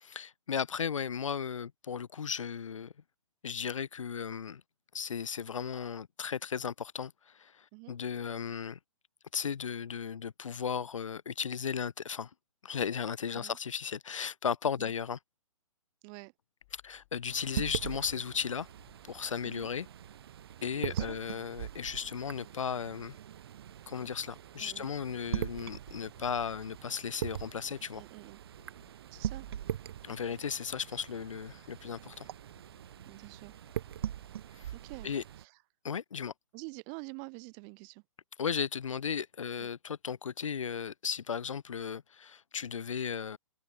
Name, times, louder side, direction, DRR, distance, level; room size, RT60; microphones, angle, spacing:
voice 1, 0.0-2.9 3.4-4.6 4.9-8.8 9.3-12.3 12.6-15.2 16.7-18.7 19.0-19.9 20.6-23.2 23.9-28.0 30.0-32.3 34.5-34.7 35.0-35.2 35.8-36.3 38.4-43.4, left 7 dB, 65° left, 0.7 m, -35 dB
sound 1, 16.6-34.3, left 21 dB, 30° left, 4.5 m, -66 dB
sound 2, 17.3-35.4, right 10 dB, 45° right, 1.1 m, -41 dB
voice 2, 20.7-21.2 24.6-24.9 27.9-28.4 29.1-29.5 33.1-33.5 34.7-35.1 35.4-35.5 36.5-38.0 39.6-39.7, right 40 dB or more, 20° right, 0.5 m, -47 dB
figure-of-eight pair, 130°, 18 cm